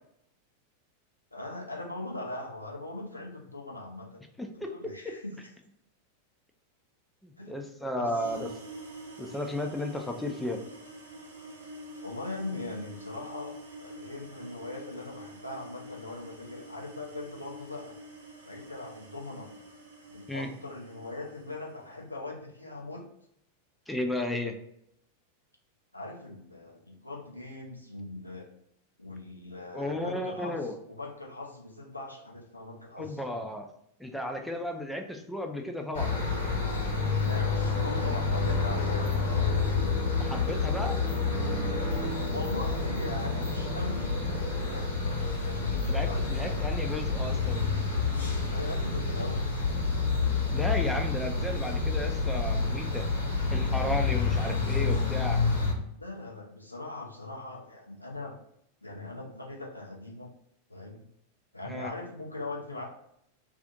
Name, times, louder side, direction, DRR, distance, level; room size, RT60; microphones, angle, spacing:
voice 1, 1.3-4.2 4.5-5.4 7.4-7.5 8.0-8.5 12.0-18.0 18.5-19.5 20.1-23.1 25.9-28.5 29.0-33.2 37.2-39.6 42.3-44.1 44.6-46.7 48.5-49.5 56.0-58.4 58.8-60.3 60.7-61.0 61.5-62.9, left 2 dB, 85° left, 0 dB, 0.5 m, -40 dB
voice 2, 4.4-5.1 7.2-8.5 9.2-10.6 20.3-20.5 23.9-24.6 29.7-30.8 33.0-33.7 34.0-36.2 40.2-41.0 45.7-47.6 50.5-53.1 53.5-55.4 61.7-61.9, left 1 dB, 5° left, 3 dB, 0.4 m, -34 dB
sound 1, 8.1-22.0, right 1 dB, 70° right, 0.7 m, -47 dB
sound 2, 35.9-55.7, left 4 dB, 70° left, 0.9 m, -28 dB
2.5 x 2.5 x 3.6 m, 0.72 s
figure-of-eight pair, 90°, 0 cm